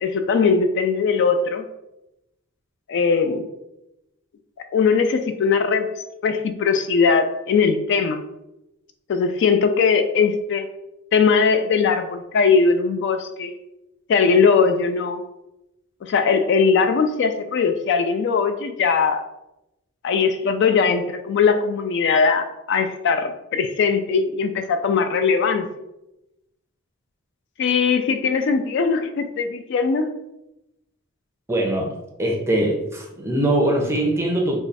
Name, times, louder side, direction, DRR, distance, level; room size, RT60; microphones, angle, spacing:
voice 1, 0.0-1.7 2.9-3.4 4.7-5.9 6.2-8.2 9.1-10.7 11.1-13.5 14.1-15.2 16.0-19.2 20.0-25.7 27.6-30.1, left 5 dB, 55° left, 8 dB, 0.3 m, -20 dB
voice 2, 31.5-31.9 32.2-34.6, right 1 dB, 10° right, 0 dB, 0.6 m, -22 dB
3.1 x 2.3 x 4.0 m, 0.92 s
head